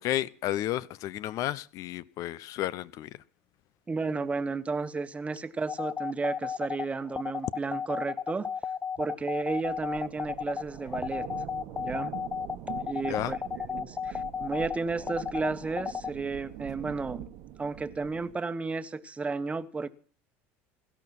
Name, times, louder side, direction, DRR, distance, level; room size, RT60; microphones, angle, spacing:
voice 1, 0.0-3.1 13.1-13.3, left 13 dB, 60° left, 0.9 m, -32 dB
voice 2, 3.9-8.5 9.0-11.3 11.8-12.1 12.8-13.4 13.7-17.3 17.6-19.9, right 4 dB, 20° right, 1.3 m, -33 dB
sound 1, 5.7-16.1, left 6 dB, 25° left, 0.7 m, -33 dB
sound 2, 9.3-18.3, right 12 dB, 70° right, 1.4 m, -44 dB
17.0 x 13.0 x 6.0 m
supercardioid pair, 95°, 7 cm